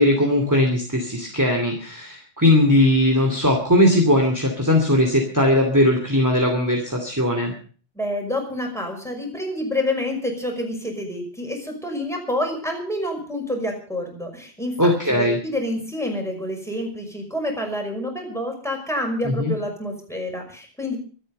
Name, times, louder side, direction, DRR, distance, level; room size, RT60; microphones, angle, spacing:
voice 1, 0.0-7.5 14.8-15.4 19.2-19.5, left 1 dB, 15° right, 2 dB, 2.7 m, -19 dB
voice 2, 8.0-21.0, left 1 dB, 5° left, 2 dB, 5.7 m, -28 dB
25.5 x 9.1 x 5.4 m, 0.42 s
omnidirectional pair, 1.1 m